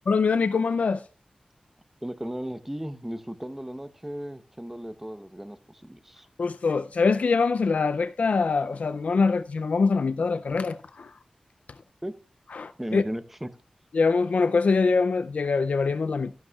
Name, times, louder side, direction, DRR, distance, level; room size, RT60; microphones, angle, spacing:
voice 1, 0.1-1.0 6.4-11.1 12.5-13.0 13.9-16.3, left 4 dB, 75° left, 0.4 m, -24 dB
voice 2, 2.0-6.3 12.0-12.1 12.8-13.5, equal, 10° right, 0.7 m, -35 dB
14.0 x 11.0 x 2.3 m
wide cardioid pair, 90°, 2 cm